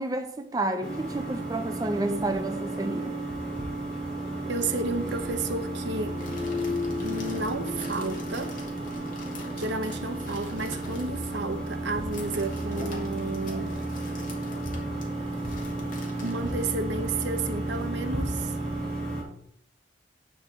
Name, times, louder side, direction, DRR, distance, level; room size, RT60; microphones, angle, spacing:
voice 1, 0.0-3.1, right 2 dB, 20° right, 0.6 m, -30 dB
sound 1, 0.8-19.2, right 1 dB, 5° left, 3.2 m, -32 dB
voice 2, 4.4-6.2 7.0-8.6 9.6-13.8 16.2-18.5, right 3 dB, 70° right, 0.9 m, -32 dB
sound 2, 6.1-17.3, left 2 dB, 45° left, 2.2 m, -46 dB
9.2 x 6.4 x 4.4 m
head